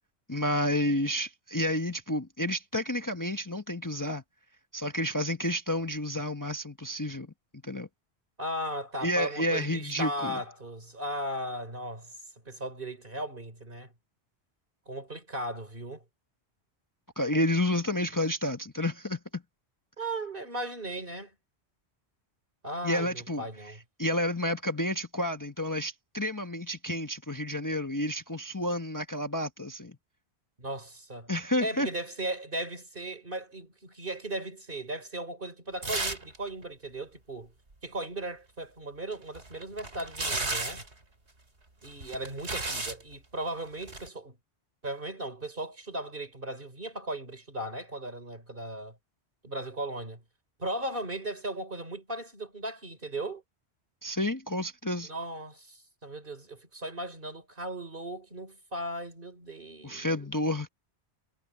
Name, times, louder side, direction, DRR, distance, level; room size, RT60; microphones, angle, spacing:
voice 1, 0.3-4.2 4.7-7.3 7.6-7.9 9.0-10.4 17.2-19.4 22.8-23.4 24.0-30.0 31.3-31.9 54.0-55.1 59.8-60.7, left 1 dB, 20° left, 1.1 m, -30 dB
voice 2, 8.4-12.1 12.5-13.9 14.9-16.0 20.0-21.3 22.6-23.8 30.6-31.3 31.6-37.5 37.8-40.8 41.8-44.4 44.8-49.0 49.4-50.2 50.6-53.4 55.0-60.1, right 1 dB, 55° right, 3.8 m, -37 dB
sound 1, 35.8-36.4 36.6-36.7 39.1-40.9 41.8-43.0 43.8-44.1, right 2 dB, 85° right, 3.8 m, -33 dB
omnidirectional pair, 1.1 m